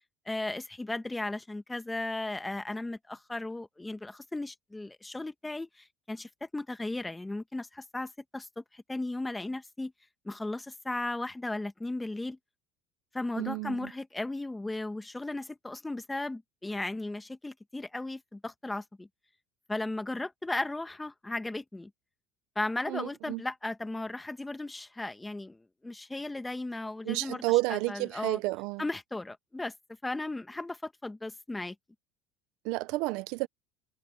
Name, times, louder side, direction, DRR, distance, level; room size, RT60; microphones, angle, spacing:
voice 1, 0.2-9.9 10.2-12.4 13.1-19.1 19.7-21.9 22.5-28.4 28.8-29.7 30.0-31.7, left 2 dB, 10° left, 1.4 m, -36 dB
voice 2, 13.4-13.8 22.9-23.4 27.1-28.8 32.6-33.5, right 22 dB, 70° right, 0.7 m, -30 dB
supercardioid pair, 125°, 0 cm